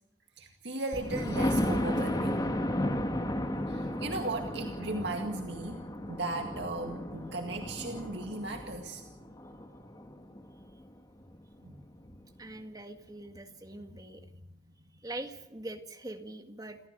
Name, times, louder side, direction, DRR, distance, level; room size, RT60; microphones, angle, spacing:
voice 1, 0.4-2.5 3.7-5.8 6.1-9.0 11.6-11.7, right 2 dB, 65° right, 3 dB, 2.1 m, -36 dB
Thunder, 0.9-10.7 11.2-11.3 11.7-11.8 12.1-12.2, left 1 dB, 20° left, 1.9 m, -34 dB
voice 2, 12.4-14.3 15.0-16.8, right 2 dB, 20° right, 6 dB, 1.9 m, -43 dB
28.5 x 14.0 x 6.8 m, 0.93 s
head